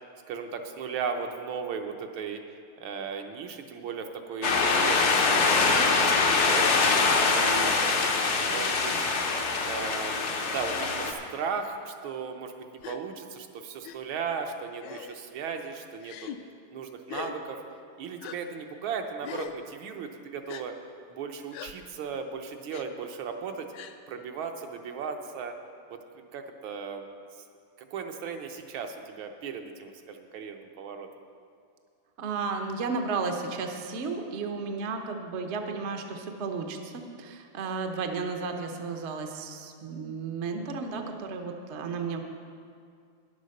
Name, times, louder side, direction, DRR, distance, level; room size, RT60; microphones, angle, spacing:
voice 1, 0.3-2.4 2.8-6.7 7.2-7.7 8.3-9.0 9.6-16.3 16.7-17.6 18.0-20.8 21.1-23.7 24.1-25.5 25.9-27.1 27.8-31.1, right 6 dB, 75° right, 5 dB, 1.6 m, -36 dB
sound 1, 4.4-11.1, left 4 dB, 55° left, 0.7 m, -24 dB
Gasp, 12.8-13.0 13.8-14.0 14.8-15.2 16.0-16.4 17.1-17.4 18.2-18.4 19.2-19.6 20.5-20.6 21.5-21.7 22.7-22.8 23.7-24.0, left 9 dB, 75° left, 1.1 m, -40 dB
voice 2, 32.2-42.2, right 4 dB, 55° right, 4 dB, 0.7 m, -33 dB
10.0 x 8.0 x 6.4 m, 2.3 s
omnidirectional pair, 2.3 m